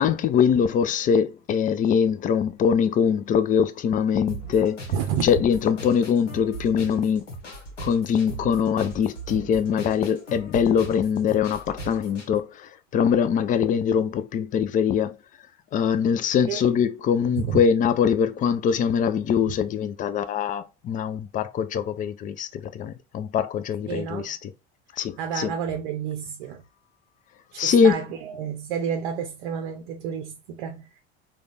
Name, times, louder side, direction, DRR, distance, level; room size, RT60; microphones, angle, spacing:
voice 1, 0.0-4.8 5.2-7.3 7.8-15.2 15.7-24.5 25.0-25.5 27.6-28.0, left 7 dB, 25° left, 0.4 m, -23 dB
sound 1, 4.3-12.3, right 2 dB, 90° left, 0.9 m, -39 dB
voice 2, 4.9-5.3 16.5-16.6 17.5-17.6 23.9-24.3 25.2-26.6 27.5-31.0, right 7 dB, 60° right, 0.7 m, -30 dB
3.7 x 2.3 x 3.3 m
figure-of-eight pair, 75°, 35 cm